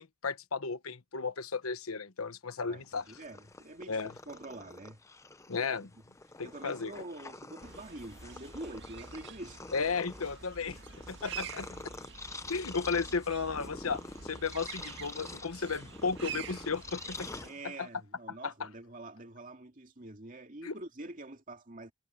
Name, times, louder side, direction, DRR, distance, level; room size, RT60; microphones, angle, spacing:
voice 1, 0.0-3.0 3.9-4.1 5.5-5.9 6.4-6.9 9.7-10.8 11.1-11.7 12.5-17.3 17.6-17.9 18.4-18.7 20.6-20.8, left 5 dB, 85° left, 1.2 m, -34 dB
voice 2, 2.6-5.0 6.4-9.6 10.7-10.9 17.4-21.9, right 2 dB, 40° right, 2.5 m, -46 dB
Purr, 2.8-18.0, left 3 dB, 15° left, 0.6 m, -47 dB
sound 1, 7.6-17.5, right 6 dB, 55° right, 1.8 m, -47 dB
head